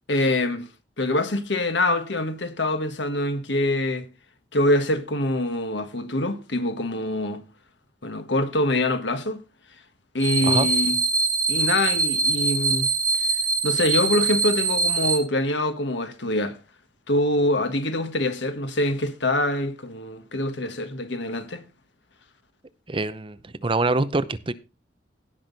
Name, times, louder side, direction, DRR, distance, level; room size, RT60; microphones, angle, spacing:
voice 1, 0.1-0.6 1.0-4.1 4.5-7.4 8.0-9.4 10.1-11.0 11.5-12.9 13.6-16.6 17.1-21.6, left 1 dB, 85° left, 1.6 m, -24 dB
sound 1, 10.2-15.2, right 4 dB, 50° right, 2.6 m, -23 dB
voice 2, 22.9-24.5, right 2 dB, 30° right, 0.7 m, -25 dB
17.0 x 6.2 x 4.1 m
head